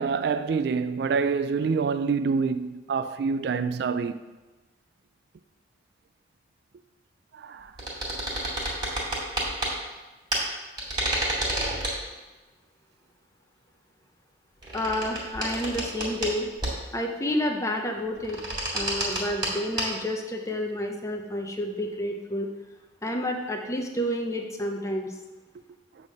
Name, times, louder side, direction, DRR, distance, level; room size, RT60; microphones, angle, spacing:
voice 1, 0.0-4.2 7.3-7.7, right 5 dB, 60° right, 0.3 m, -26 dB
sound 1, 7.8-9.7 10.3-10.4 10.8-12.0 14.6-16.3 16.6-17.0 18.2-19.5 19.8-19.9, right 1 dB, 25° right, 2.1 m, -29 dB
voice 2, 14.7-16.5 16.9-18.4 18.7-22.5 23.0-25.2, left 1 dB, 15° left, 0.7 m, -30 dB
8.2 x 3.5 x 6.4 m
head